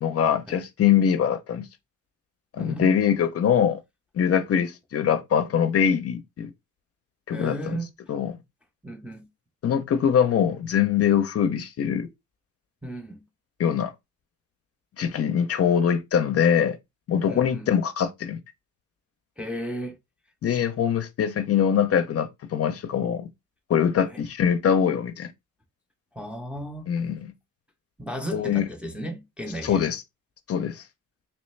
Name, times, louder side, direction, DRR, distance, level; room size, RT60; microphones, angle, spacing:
voice 1, 0.0-1.7 2.5-3.8 4.1-6.5 7.3-7.8 8.1-8.3 9.6-12.1 13.6-13.9 15.0-16.8 17.1-18.4 20.4-23.3 23.7-25.3 26.9-27.2 28.3-28.7 29.6-30.0 30.5-30.8, left 8 dB, 50° left, 0.5 m, -23 dB
voice 2, 2.6-2.9 7.3-7.9 8.8-9.3 12.8-13.2 17.3-17.7 19.4-20.0 24.1-24.2 26.1-26.9 28.0-29.9, right 1 dB, 5° right, 0.5 m, -34 dB
3.2 x 3.0 x 3.1 m
wide cardioid pair, 150°, 32 cm